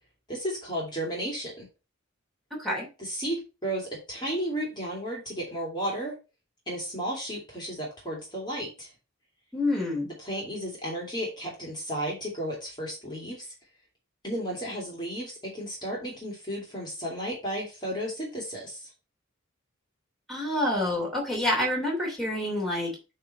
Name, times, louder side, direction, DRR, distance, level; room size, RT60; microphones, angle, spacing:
voice 1, 0.3-1.7 3.0-6.1 6.7-8.9 10.2-13.5 14.2-18.9, right 1 dB, 20° left, -2 dB, 2.5 m, -33 dB
voice 2, 9.5-10.1 20.3-22.9, left 1 dB, ahead, -4 dB, 3.1 m, -27 dB
9.0 x 3.4 x 5.5 m, 0.30 s
head